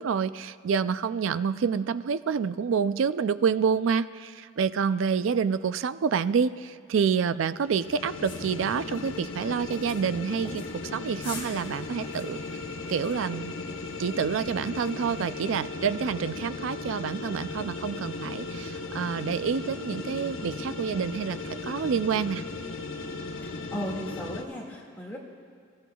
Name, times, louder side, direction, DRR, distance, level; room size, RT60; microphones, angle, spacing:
voice 1, 0.0-10.6 10.9-12.4 12.9-13.5 14.0-22.4, right 6 dB, 70° right, 14 dB, 0.4 m, -28 dB
sound 1, 7.5-24.4, left 3 dB, 80° left, 0.9 m, -37 dB
sound 2, 8.2-15.2, left 3 dB, 25° left, 2.2 m, -48 dB
voice 2, 23.4-25.2, equal, 10° left, -3 dB, 2.0 m, -36 dB
28.5 x 15.0 x 2.3 m, 2.2 s
head